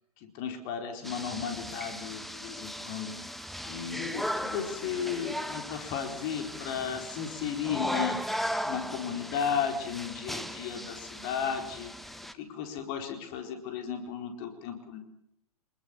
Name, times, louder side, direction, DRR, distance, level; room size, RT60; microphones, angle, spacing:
voice 1, 0.2-3.1 3.6-11.9 12.3-15.0, left 7 dB, 40° left, 5 dB, 4.3 m, -34 dB
sound 1, 1.0-12.3, equal, ahead, 1.3 m, -37 dB
27.0 x 20.5 x 7.2 m, 0.77 s
figure-of-eight pair, 105°, 18 cm